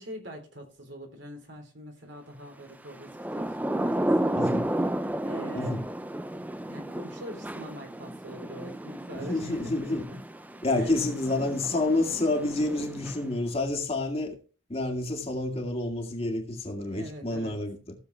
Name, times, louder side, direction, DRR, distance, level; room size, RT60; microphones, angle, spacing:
voice 1, 0.0-4.5 5.0-5.8 6.3-10.2 10.7-11.0 12.9-13.0 16.9-17.6, equal, 65° right, 3.5 m, -43 dB
Thunder / Rain, 2.9-13.5, right 1 dB, 10° right, 0.5 m, -32 dB
voice 2, 4.3-4.7 5.5-5.8 9.3-10.1 10.6-14.4 14.7-17.9, left 2 dB, 30° left, 2.1 m, -29 dB
15.5 x 7.3 x 3.4 m
head